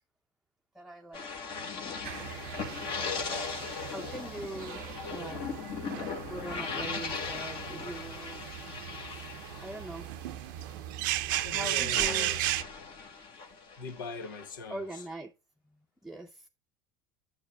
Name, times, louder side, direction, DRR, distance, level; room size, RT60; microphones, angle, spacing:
voice 1, 0.7-1.2 3.6-5.4 5.9-8.4 9.6-10.1 11.5-12.3 14.7-15.3 16.0-16.5, right 1 dB, ahead, 0.6 m, -42 dB
sound 1, 1.1-11.0 11.3-15.1, left 5 dB, 50° left, 1.8 m, -39 dB
sound 2, 2.0-12.6, right 15 dB, 80° right, 0.6 m, -36 dB
voice 2, 11.4-12.4 13.8-14.8, left 4 dB, 90° left, 0.9 m, -40 dB
8.7 x 7.8 x 2.3 m
hypercardioid pair, 90°, 11 cm